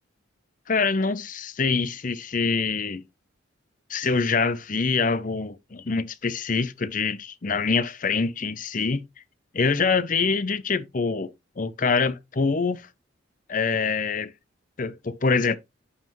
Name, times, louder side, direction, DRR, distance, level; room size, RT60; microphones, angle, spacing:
voice 1, 0.7-3.0 3.9-9.0 9.5-12.9 13.5-14.3 14.8-15.6, left 4 dB, 40° left, 0.6 m, -25 dB
9.5 x 5.6 x 3.1 m
head